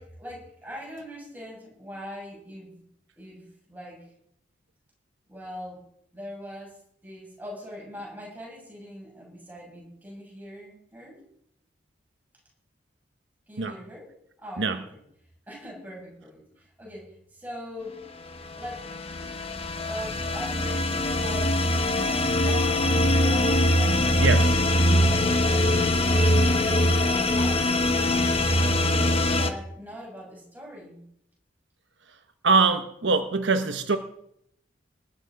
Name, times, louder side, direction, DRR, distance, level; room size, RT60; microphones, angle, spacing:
voice 1, 0.0-2.8 3.2-4.1 5.3-5.8 6.1-11.2 13.5-15.0 15.5-18.0 18.6-18.9 19.8-24.7 24.9-26.0 26.5-28.3 28.8-31.0, equal, 10° right, -3 dB, 7.6 m, -42 dB
sound 1, 18.5-29.5, left 1 dB, 30° left, 1.3 m, -22 dB
voice 2, 24.2-24.6 32.4-34.0, right 4 dB, 70° right, 8 dB, 1.0 m, -23 dB
20.0 x 10.0 x 5.2 m, 0.72 s
head